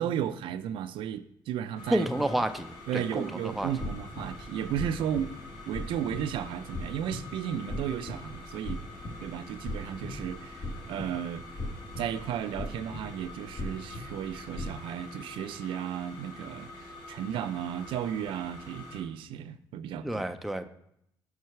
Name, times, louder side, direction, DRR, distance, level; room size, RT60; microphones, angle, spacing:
voice 1, 0.0-2.1 2.9-5.4 5.7-8.8 9.2-11.5 12.0-20.2 20.6-20.7, right 9 dB, 75° right, 0.4 m, -34 dB
sound 1, 1.8-19.0, left 2 dB, 75° left, 2.4 m, -47 dB
voice 2, 1.9-3.7 20.0-20.7, right 1 dB, ahead, 0.4 m, -30 dB
sound 2, 3.5-14.7, left 1 dB, 45° left, 1.1 m, -40 dB
5.5 x 4.6 x 5.7 m
cardioid pair, 125°, 9 cm